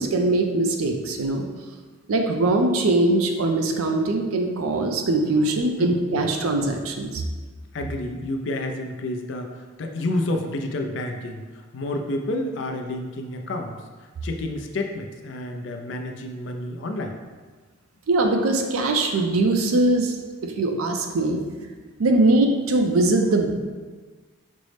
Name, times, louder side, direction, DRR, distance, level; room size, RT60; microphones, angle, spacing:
voice 1, 0.0-1.4 2.1-7.2 18.1-20.1 20.4-21.4 22.0-23.5, right 2 dB, 85° right, 4 dB, 0.5 m, -21 dB
voice 2, 5.8-6.2 7.7-13.8 14.2-17.2, left 1 dB, 60° left, 4 dB, 0.4 m, -30 dB
5.2 x 2.0 x 3.2 m, 1.4 s
head